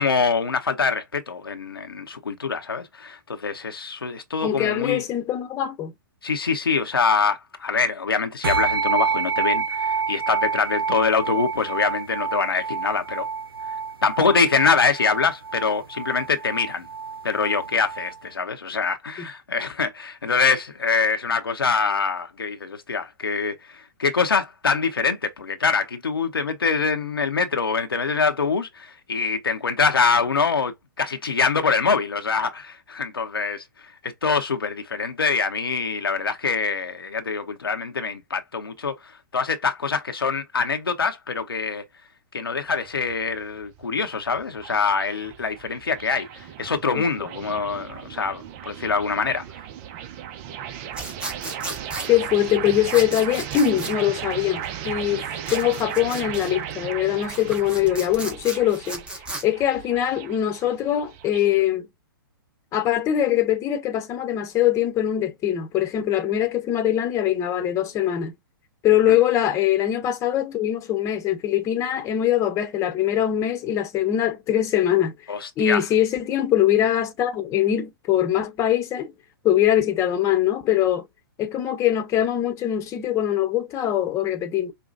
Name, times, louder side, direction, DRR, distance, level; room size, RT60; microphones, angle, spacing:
voice 1, 0.0-5.0 6.2-13.2 14.0-16.9 17.2-33.6 34.0-39.0 39.3-41.8 42.3-49.4 69.1-69.2 75.3-75.8, left 5 dB, 85° left, 0.8 m, -24 dB
voice 2, 4.4-5.9 19.2-19.3 46.9-47.0 52.1-59.0 59.4-61.9 62.7-68.3 68.8-75.1 75.6-79.1 79.4-81.0 81.4-84.7, left 11 dB, 25° left, 1.0 m, -22 dB
sound 1, 8.4-18.1, right 5 dB, 80° right, 0.7 m, -28 dB
sound 2, 42.7-61.6, right 9 dB, 40° right, 0.7 m, -36 dB
sound 3, 50.9-52.1 52.9-53.9 55.4-56.5 57.1-59.4, right 1 dB, 10° right, 1.1 m, -35 dB
5.2 x 2.3 x 2.5 m
figure-of-eight pair, 115°, 12 cm